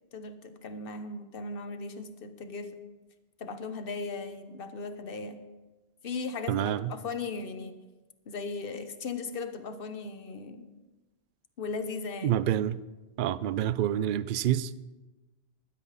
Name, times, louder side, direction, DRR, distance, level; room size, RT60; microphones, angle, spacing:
voice 1, 0.1-2.7 3.4-5.4 6.0-7.8 8.3-10.7 11.6-12.4, left 4 dB, 55° left, 1.2 m, -37 dB
voice 2, 6.5-6.9 12.2-12.8 13.2-14.7, right 11 dB, 60° right, 0.6 m, -27 dB
15.5 x 12.0 x 4.1 m
omnidirectional pair, 1.1 m